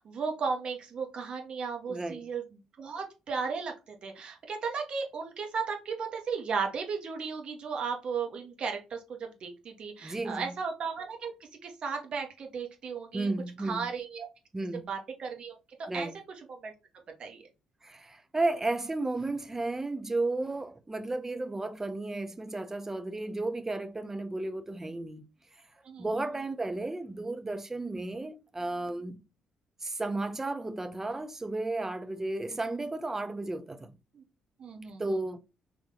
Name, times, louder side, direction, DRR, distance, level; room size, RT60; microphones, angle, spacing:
voice 1, 0.0-2.4 2.8-3.7 4.0-11.3 11.6-13.3 13.7-14.3 14.9-16.1 16.6-16.7 17.2-17.4 25.8-26.2 34.1-34.2 34.6-35.1, right 5 dB, 50° right, 1.3 m, -35 dB
voice 2, 1.9-2.3 10.0-10.6 13.1-13.9 14.5-14.9 15.9-16.2 17.8-25.2 26.0-29.2 29.8-33.9 35.0-35.4, right 2 dB, 20° right, 0.6 m, -33 dB
3.8 x 2.9 x 3.8 m
hypercardioid pair, 45°, 2 cm